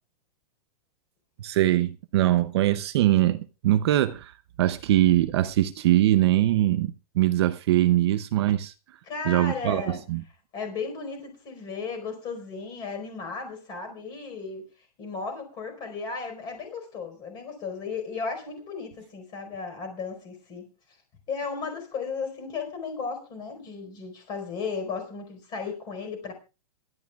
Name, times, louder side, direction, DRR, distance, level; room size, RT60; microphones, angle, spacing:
voice 1, 1.4-4.3 4.6-8.7 9.3-10.2, right 14 dB, 45° right, 0.7 m, -22 dB
voice 2, 9.1-10.0 10.5-14.7 15.0-20.7 21.3-26.3, left 5 dB, 20° left, 4.6 m, -35 dB
26.0 x 12.5 x 2.4 m
supercardioid pair, 170°, 20 cm